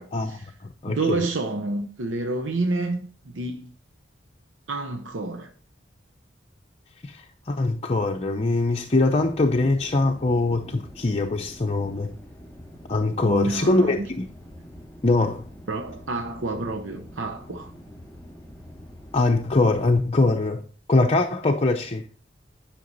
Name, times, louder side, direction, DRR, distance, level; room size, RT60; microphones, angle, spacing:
voice 1, 0.0-0.5 0.9-3.7 4.7-5.5 13.2-14.1 15.7-17.7, right 2 dB, 85° right, 0.8 m, -29 dB
voice 2, 0.6-1.2 7.0-12.1 12.9-14.2 15.0-15.5 19.1-20.6 20.9-22.1, left 2 dB, 35° left, 0.7 m, -22 dB
sound 1, 9.1-20.0, equal, 10° left, 4.2 m, -45 dB
11.0 x 5.9 x 4.1 m
head